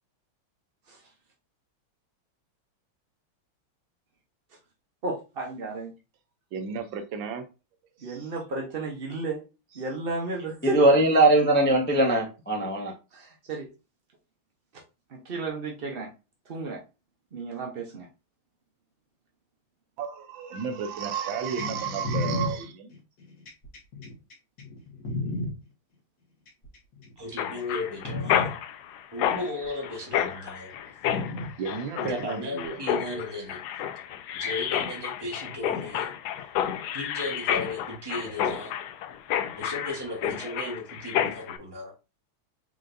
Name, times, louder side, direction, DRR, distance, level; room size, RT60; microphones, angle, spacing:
voice 1, 5.0-5.9 8.0-9.4 9.7-10.8 13.1-13.7 15.1-16.1 16.5-16.8 17.3-18.1, right 3 dB, 55° right, 0.6 m, -33 dB
voice 2, 6.5-7.4 20.0-22.9 31.6-32.8, right 6 dB, 75° right, 1.4 m, -32 dB
voice 3, 10.6-12.9, right 1 dB, 10° left, 0.5 m, -20 dB
sound 1, 21.6-25.5 26.5-27.1 27.6-27.7 28.0-28.5 29.6-29.7 31.0-31.5 32.6-32.7, left 2 dB, 50° left, 1.8 m, -32 dB
voice 4, 27.2-28.5 29.1-30.7 32.0-33.6 34.4-36.1 36.9-38.7 39.6-41.9, left 1 dB, 15° right, 1.0 m, -35 dB
Mechanisms, 27.4-41.6, left 10 dB, 80° left, 0.9 m, -30 dB
5.0 x 3.8 x 2.6 m
omnidirectional pair, 2.2 m